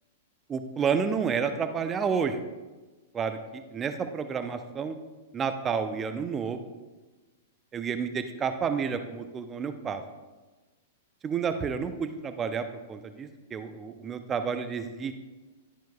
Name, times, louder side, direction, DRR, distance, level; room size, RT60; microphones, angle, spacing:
voice 1, 0.5-2.4 3.1-5.0 5.3-6.7 7.7-10.0 11.2-15.1, right 6 dB, 20° right, 9 dB, 0.7 m, -30 dB
12.0 x 10.0 x 2.3 m, 1.2 s
figure-of-eight pair, 100°, 0 cm